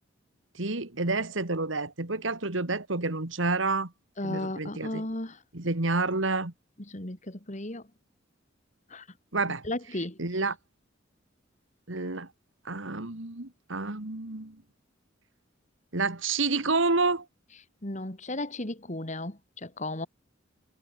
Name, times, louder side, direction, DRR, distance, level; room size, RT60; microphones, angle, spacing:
voice 1, 0.6-3.9 4.2-5.0 5.5-6.5 9.3-9.6 10.2-10.6 11.9-12.3 12.7-14.6 15.9-17.3, right 3 dB, 75° right, 2.2 m, -29 dB
voice 2, 4.2-5.4 6.9-7.8 8.9-9.0 9.6-10.2 17.8-20.1, left 1 dB, 35° left, 2.7 m, -35 dB
head